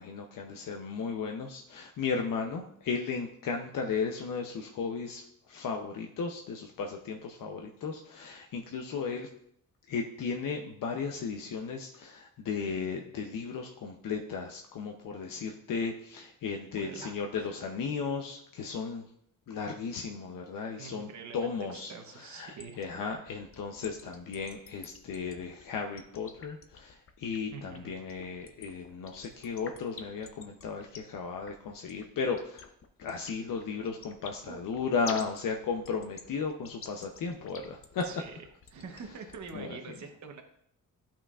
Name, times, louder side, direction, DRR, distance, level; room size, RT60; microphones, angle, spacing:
voice 1, 0.0-9.3 9.9-19.1 19.5-21.1 21.3-32.6 33.0-38.1 39.5-39.8, left 5 dB, 75° left, 3 dB, 0.7 m, -35 dB
voice 2, 16.8-17.6 20.8-22.8 27.5-28.0 34.5-34.6 38.0-38.3 38.7-40.4, right 5 dB, 60° right, 4 dB, 0.9 m, -45 dB
sound 1, 22.6-39.6, left 5 dB, 40° left, 0.7 m, -47 dB
12.0 x 5.8 x 2.4 m, 0.72 s
wide cardioid pair, 150°, 33 cm